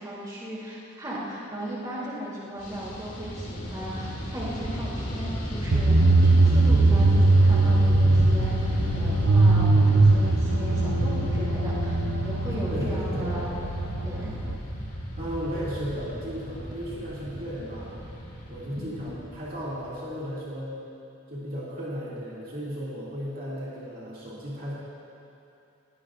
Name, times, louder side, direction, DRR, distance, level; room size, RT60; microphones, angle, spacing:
voice 1, 0.0-13.5 14.0-14.3, equal, 20° right, -7 dB, 3.0 m, -36 dB
Fixed-wing aircraft airplane, 2.6-20.0, equal, 35° left, 1.9 m, -32 dB
sound 1, 5.7-14.6, right 2 dB, 75° right, 0.7 m, -21 dB
voice 2, 12.7-13.5 15.2-17.9 18.5-20.8 21.3-24.7, equal, 45° right, -8 dB, 2.6 m, -35 dB
21.0 x 16.5 x 2.6 m, 2.7 s
head